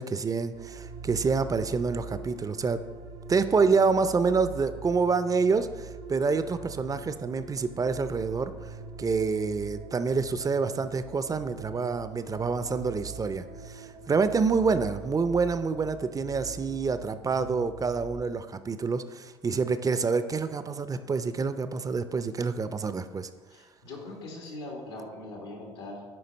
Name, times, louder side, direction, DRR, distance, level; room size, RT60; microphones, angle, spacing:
voice 1, 0.0-2.8 3.3-8.5 9.0-23.3, right 4 dB, 25° right, 12 dB, 0.5 m, -27 dB
sound 1, 0.5-18.2, right 4 dB, 70° right, 0.9 m, -43 dB
voice 2, 23.5-26.0, left 2 dB, 85° left, -1 dB, 1.9 m, -41 dB
7.8 x 5.2 x 4.1 m, 1.4 s
hypercardioid pair, 65°, 13 cm